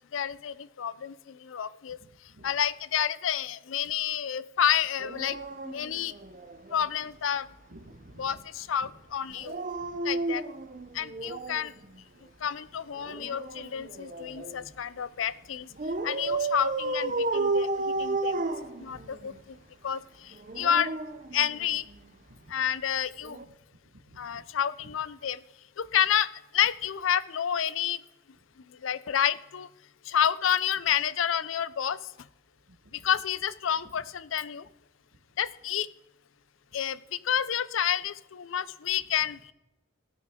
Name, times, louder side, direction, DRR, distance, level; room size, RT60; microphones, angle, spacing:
voice 1, 0.1-2.0 2.4-5.4 5.6-6.1 6.7-7.5 8.2-9.6 10.0-10.4 10.9-11.7 12.4-15.7 16.0-18.4 18.8-19.6 19.8-20.9 21.3-21.9 22.5-23.4 24.2-25.4 25.8-28.0 28.8-29.7 30.1-32.0 32.9-34.7 35.4-35.9 36.7-39.5, left 9 dB, 80° left, 18 dB, 0.5 m, -29 dB
voice 2, 2.0-2.5 7.7-8.4 8.8-8.9 9.8-10.0 10.9-11.3 14.5-14.6 18.0-18.1 18.9-19.1 22.3-22.5 23.8-24.4 24.8-24.9 32.8-33.1, right 1 dB, 75° right, 6 dB, 1.4 m, -53 dB
Dog, 5.0-6.9 9.3-11.7 13.0-14.6 15.8-19.3 20.3-22.0 23.2-23.4, right 2 dB, 40° right, 0.7 m, -32 dB
16.5 x 9.3 x 3.7 m, 0.97 s
head